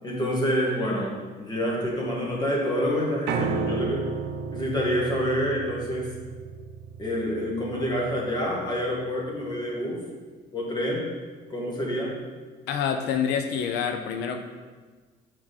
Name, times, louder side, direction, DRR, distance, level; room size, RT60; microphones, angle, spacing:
voice 1, 0.0-4.1 4.5-6.2 7.0-10.0 10.5-11.1 11.5-12.2, equal, 25° left, -3 dB, 1.7 m, -27 dB
Piano, 3.3-9.4, right 5 dB, 85° right, 0.6 m, -34 dB
voice 2, 12.7-14.4, left 7 dB, 85° left, 6 dB, 0.5 m, -27 dB
6.1 x 5.0 x 4.0 m, 1.4 s
cardioid pair, 110°, 17 cm